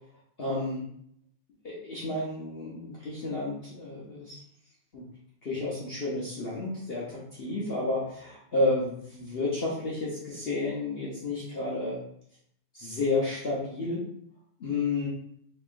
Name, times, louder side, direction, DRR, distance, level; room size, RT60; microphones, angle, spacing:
voice 1, 0.4-0.8 1.6-4.4 4.9-5.0 5.4-12.0 12.7-14.0 14.6-15.1, left 2 dB, 60° left, -6 dB, 0.6 m, -31 dB
4.2 x 2.9 x 2.5 m, 0.67 s
omnidirectional pair, 2.0 m